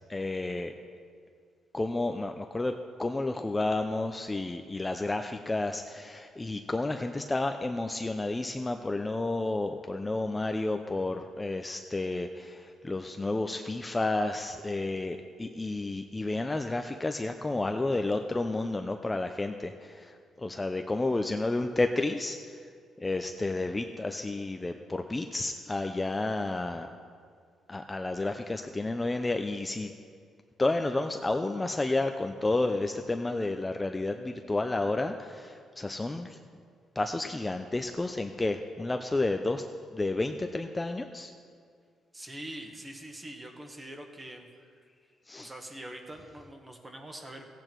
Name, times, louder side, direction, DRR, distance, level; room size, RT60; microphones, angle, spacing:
voice 1, 0.1-0.7 1.7-2.7 3.0-20.1 20.4-22.4 23.0-26.9 27.7-29.9 30.6-36.3 37.0-39.6 39.9-41.3 45.3-45.5, left 2 dB, 20° left, 6 dB, 0.5 m, -31 dB
voice 2, 42.1-44.5 45.4-47.5, right 1 dB, 20° right, 4 dB, 1.5 m, -43 dB
15.5 x 8.7 x 4.6 m, 2.1 s
cardioid pair, 90°, 0 cm